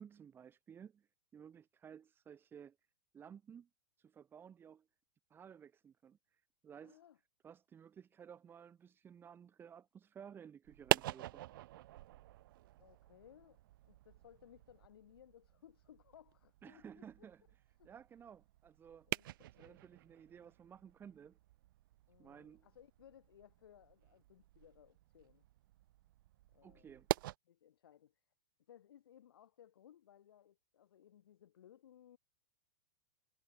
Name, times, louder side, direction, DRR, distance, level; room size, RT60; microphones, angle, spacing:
voice 1, 0.0-2.8 3.1-3.7 4.0-4.9 5.3-7.0 7.4-11.4 16.6-17.4 17.8-19.1 19.6-21.4 22.2-22.6 26.6-27.1, right 8 dB, 20° right, 1.3 m, -55 dB
voice 2, 6.8-7.2 12.8-13.6 13.8-17.1 17.8-17.9 19.1-19.3 19.5-19.8 22.1-25.5 26.5-27.0 27.5-28.2 28.7-32.2, left 10 dB, 85° left, 5.5 m, -62 dB
sound 1, 10.6-27.4, right 16 dB, 65° right, 0.5 m, -44 dB
supercardioid pair, 140°, 12 cm